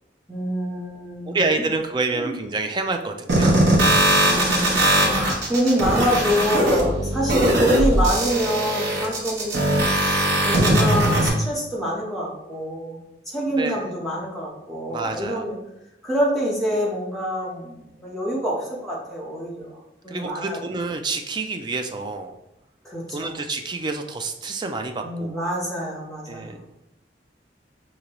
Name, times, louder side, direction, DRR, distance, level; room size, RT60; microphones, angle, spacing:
voice 1, 0.3-1.5 2.1-2.4 4.2-9.6 10.4-13.0 13.3-15.6 16.0-20.6 22.8-23.4 25.0-26.6, equal, ahead, -6 dB, 1.0 m, -26 dB
voice 2, 1.3-3.7 13.5-13.9 14.9-15.5 20.1-22.4 23.1-25.4 26.3-26.7, right 3 dB, 25° right, 5 dB, 0.3 m, -28 dB
sound 1, 3.3-11.3, right 1 dB, 75° right, 1.0 m, -20 dB
5.1 x 2.8 x 3.0 m, 0.90 s
head